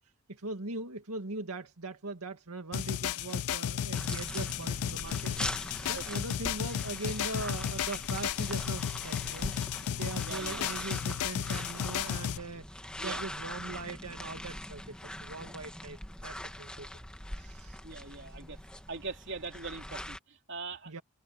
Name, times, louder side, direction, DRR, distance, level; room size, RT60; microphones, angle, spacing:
voice 1, 0.3-5.3 5.9-9.5 9.9-12.7 13.0-16.9 17.3-17.8 20.9-21.0, right 3 dB, 85° right, 2.0 m, -40 dB
sound 1, 2.7-12.4, left 9 dB, 85° left, 0.4 m, -34 dB
sound 2, 3.9-20.2, left 1 dB, 5° left, 1.4 m, -42 dB
voice 2, 10.2-10.7 13.0-13.2 17.8-18.6 18.9-20.9, right 4 dB, 55° right, 3.1 m, -42 dB
head